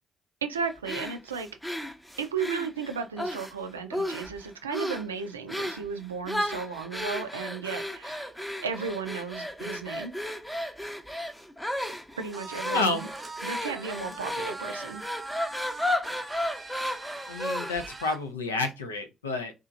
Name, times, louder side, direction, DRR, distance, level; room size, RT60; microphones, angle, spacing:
voice 1, 0.4-1.5 2.2-8.3 8.6-10.1 12.2-13.1 13.4-15.0, right 5 dB, 90° right, 0.3 m, -34 dB
sound 1, 0.8-3.5 3.9-4.4 4.7-5.1 5.5-5.9 6.3-17.9, left 1 dB, 5° left, 0.7 m, -33 dB
sound 2, 12.3-18.2, right 2 dB, 30° right, 0.7 m, -42 dB
voice 2, 12.7-13.0 17.3-19.5, left 3 dB, 90° left, 0.4 m, -30 dB
2.8 x 2.4 x 2.4 m
hypercardioid pair, 45°, 0 cm